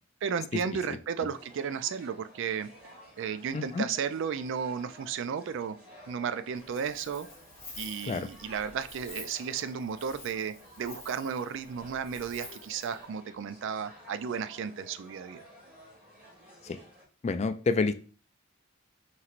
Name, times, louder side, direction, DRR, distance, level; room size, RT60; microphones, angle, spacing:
voice 1, 0.2-2.7 3.2-5.8 6.0-7.3 7.8-15.4, right 7 dB, 60° right, 12 dB, 0.3 m, -34 dB
sound 1, 1.2-17.0, equal, 5° right, 1.6 m, -53 dB
voice 2, 3.5-3.9 8.1-8.3 16.6-16.8 17.2-17.9, left 4 dB, 30° left, 9 dB, 0.3 m, -28 dB
Wind, 6.5-13.0, left 2 dB, 10° left, 1.5 m, -49 dB
5.7 x 3.1 x 2.5 m, 0.39 s
head